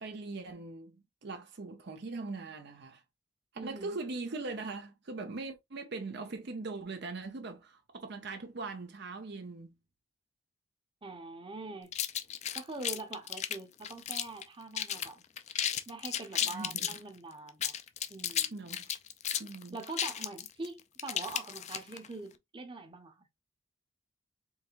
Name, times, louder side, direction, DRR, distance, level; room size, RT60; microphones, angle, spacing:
voice 1, 0.0-3.0 3.6-9.8 16.3-17.0 18.5-18.9 19.4-19.8, right 3 dB, 55° right, 0.6 m, -41 dB
voice 2, 3.6-4.0 11.0-11.9 12.5-15.2 15.9-17.7 18.1-18.5 19.7-23.3, right 3 dB, 25° right, 0.9 m, -43 dB
sound 1, 11.9-14.4 14.7-15.1 15.4-17.0 17.5-22.1, left 10 dB, 35° left, 0.4 m, -34 dB
4.8 x 3.3 x 2.5 m
head